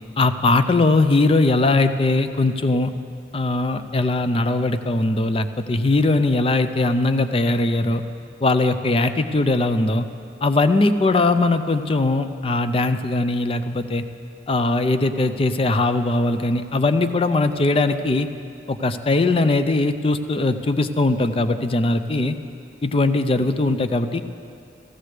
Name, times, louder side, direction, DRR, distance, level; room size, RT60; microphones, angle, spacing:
voice 1, 0.2-2.9 3.3-8.0 8.4-10.1 10.4-14.0 14.5-18.3 18.7-22.4 22.8-24.2, left 2 dB, 30° left, 10 dB, 0.4 m, -20 dB
15.0 x 14.5 x 3.3 m, 2.3 s
head